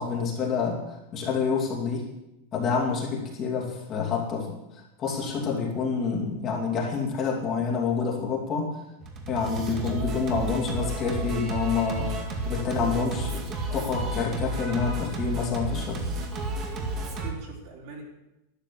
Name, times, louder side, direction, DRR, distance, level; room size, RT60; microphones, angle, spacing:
voice 1, 0.0-2.1 2.5-8.8 9.3-13.3 13.7-16.0, left 5 dB, 20° left, -1 dB, 2.6 m, -28 dB
Singing, 9.0-17.3, right 2 dB, 25° right, 1.9 m, -32 dB
voice 2, 12.8-13.4 17.0-18.0, right 5 dB, 40° right, 0 dB, 3.9 m, -43 dB
12.5 x 12.0 x 7.7 m, 0.92 s
supercardioid pair, 180°, 0 cm